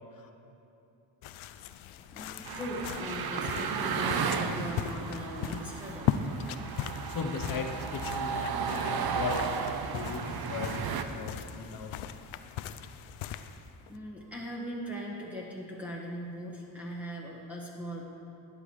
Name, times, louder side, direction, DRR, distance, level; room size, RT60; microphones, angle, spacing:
sound 1, 1.2-14.0, left 9 dB, 80° left, 0.5 m, -39 dB
voice 1, 2.1-6.2 13.9-18.0, equal, 5° right, -5 dB, 1.8 m, -39 dB
sound 2, 2.5-11.0, right 6 dB, 50° right, 0.7 m, -34 dB
voice 2, 7.1-9.6 9.9-12.1, left 5 dB, 45° left, 5 dB, 0.9 m, -37 dB
12.0 x 9.2 x 3.2 m, 2.9 s
cardioid pair, 75°, 48 cm